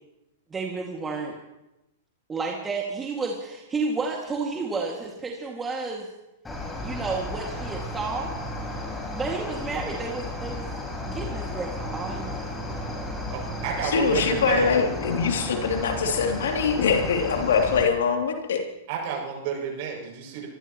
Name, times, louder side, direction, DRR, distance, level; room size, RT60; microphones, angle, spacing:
voice 1, 0.5-1.4 2.3-6.1 6.8-8.3 8.6-8.8 9.1-10.7 11.0-12.6, right 4 dB, 15° right, -1 dB, 2.2 m, -31 dB
Cricket, 6.4-17.8, left 1 dB, 10° left, 5.1 m, -33 dB
voice 2, 13.3-14.7 18.9-20.5, right 6 dB, 55° right, -1 dB, 6.8 m, -31 dB
voice 3, 13.8-18.6, left 5 dB, 75° left, 2 dB, 3.0 m, -23 dB
24.5 x 16.0 x 3.1 m, 0.94 s
hypercardioid pair, 115°, 0 cm